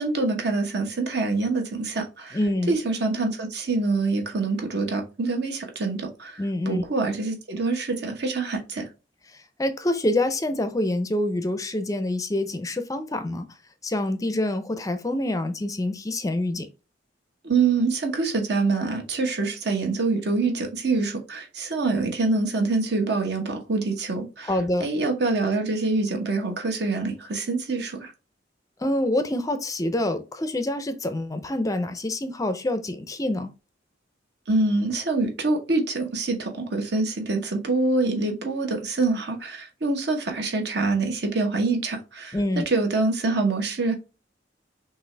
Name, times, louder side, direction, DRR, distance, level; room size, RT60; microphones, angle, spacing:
voice 1, 0.0-2.4 2.7-8.9 17.4-24.5 24.8-28.1 34.5-42.4 42.7-43.9, right 3 dB, 65° right, 1.1 m, -25 dB
voice 2, 2.3-2.8 6.4-6.8 9.3-13.5 13.8-16.7 24.5-24.9 28.8-33.5 42.3-42.7, left 1 dB, 20° left, 0.5 m, -26 dB
5.9 x 2.5 x 3.2 m
head